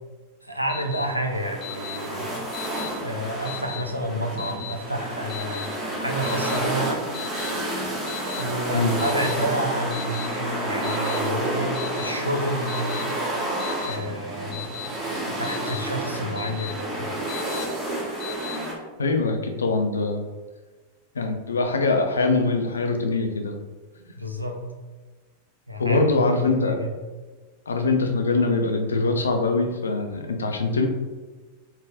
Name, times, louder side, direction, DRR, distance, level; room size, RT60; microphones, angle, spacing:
voice 1, 0.4-2.5 3.0-5.7 6.0-7.0 8.3-13.1 13.8-14.8 15.3-17.1 24.2-24.6 25.7-26.9, right 1 dB, 90° right, 2 dB, 0.5 m, -30 dB
Alarm, 0.7-1.1 1.6-2.0 2.5-2.9 3.5-3.8 4.4-4.7 5.3-5.7 6.2-6.6 7.1-7.5 8.1-8.4 9.0-9.3 9.9-10.3 10.8-11.2 11.8-12.1 12.7-13.0 13.6-14.0 14.5-14.9 15.4-15.8 16.4-16.7 17.3-17.6 18.2-18.6, left 14 dB, 40° left, 0.8 m, -36 dB
sound 1, 0.7-18.7, right 1 dB, 10° right, 1.2 m, -30 dB
voice 2, 19.0-20.2 21.2-23.6 25.8-26.8 27.7-30.9, left 3 dB, 70° left, 4 dB, 0.4 m, -23 dB
3.5 x 2.4 x 3.4 m, 1.3 s
figure-of-eight pair, 90°, 0 cm